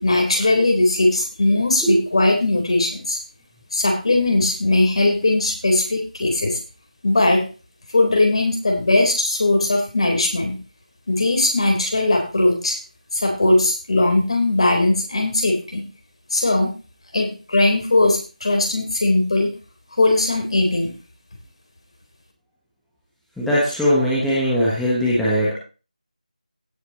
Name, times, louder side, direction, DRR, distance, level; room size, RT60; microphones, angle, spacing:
voice 1, 0.0-3.2 3.7-6.6 7.0-7.4 7.9-10.6 11.1-12.8 13.1-15.8 16.3-16.7 17.1-19.5 20.0-20.9, left 2 dB, 45° left, 2 dB, 4.0 m, -19 dB
voice 2, 23.4-25.5, equal, ahead, -9 dB, 1.4 m, -19 dB
17.0 x 8.0 x 3.1 m, 0.33 s
figure-of-eight pair, 170°, 4 cm